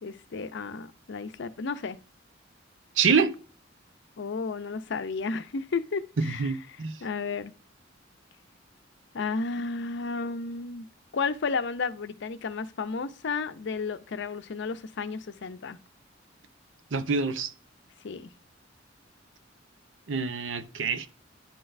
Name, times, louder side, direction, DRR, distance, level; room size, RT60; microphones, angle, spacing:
voice 1, 0.0-2.0 4.2-6.5 7.0-7.5 9.1-10.9 11.1-15.8 18.0-18.3, left 4 dB, 65° left, 0.5 m, -32 dB
voice 2, 3.0-3.3 6.2-7.0 16.9-17.5 20.1-21.1, right 5 dB, 75° right, 0.6 m, -26 dB
10.0 x 3.9 x 2.6 m
head